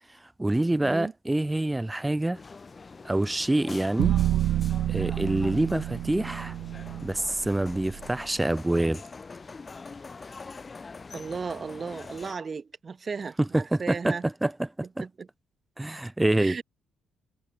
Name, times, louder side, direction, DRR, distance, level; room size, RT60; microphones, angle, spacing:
voice 1, 0.4-2.4 3.0-4.1 4.9-6.5 7.0-9.0 13.4-14.5 14.8-15.0 15.8-16.6, right 1 dB, 10° right, 2.3 m, -26 dB
sound 1, 2.3-12.4, left 4 dB, 30° left, 3.5 m, -44 dB
sound 2, 4.0-8.2, right 13 dB, 80° right, 0.8 m, -29 dB
voice 2, 11.1-14.2 15.0-15.3 16.4-16.6, right 5 dB, 35° right, 1.7 m, -35 dB
cardioid pair, 90°, 0 cm